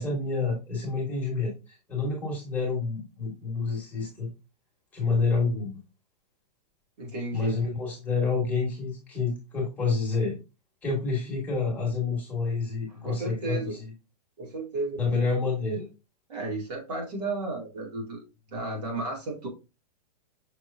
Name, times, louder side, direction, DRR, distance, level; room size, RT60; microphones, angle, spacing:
voice 1, 0.0-4.3 4.9-5.8 7.3-10.3 10.8-13.8 15.0-15.9, left 4 dB, 5° left, -5 dB, 1.3 m, -28 dB
voice 2, 7.0-7.6 12.9-13.8 14.4-15.1 16.3-18.2 18.5-19.5, right 2 dB, 75° right, -1 dB, 2.5 m, -33 dB
5.9 x 3.1 x 2.6 m, 0.28 s
supercardioid pair, 175°, 21 cm